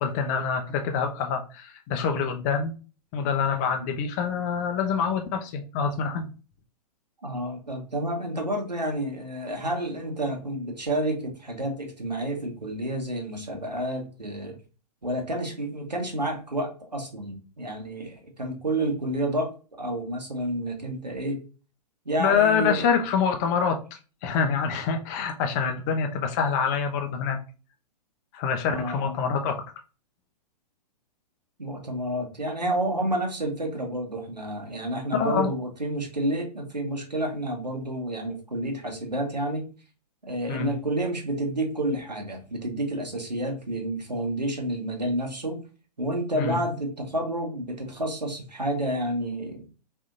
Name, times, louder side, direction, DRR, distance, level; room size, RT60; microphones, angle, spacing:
voice 1, 0.0-2.7 3.1-6.3 22.2-23.8 24.2-27.4 28.3-29.6 35.1-35.5 40.5-40.7 46.3-46.6, left 6 dB, 25° left, 0.4 m, -26 dB
voice 2, 7.2-14.6 15.0-21.4 22.0-22.9 28.7-29.2 31.6-39.7 40.3-45.6 46.0-49.7, right 1 dB, 90° right, 1.1 m, -30 dB
3.5 x 2.7 x 2.4 m
figure-of-eight pair, 110°, 21 cm